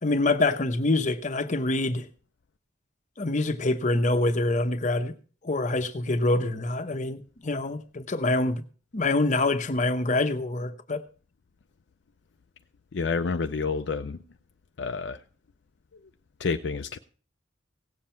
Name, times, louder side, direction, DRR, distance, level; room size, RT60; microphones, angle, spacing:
voice 1, 0.0-2.1 3.2-5.1 5.4-8.6 8.9-11.0, left 2 dB, 40° left, 0.8 m, -25 dB
voice 2, 12.9-14.2 14.8-15.2 16.4-17.0, left 4 dB, 65° left, 0.5 m, -29 dB
17.0 x 7.5 x 4.4 m
head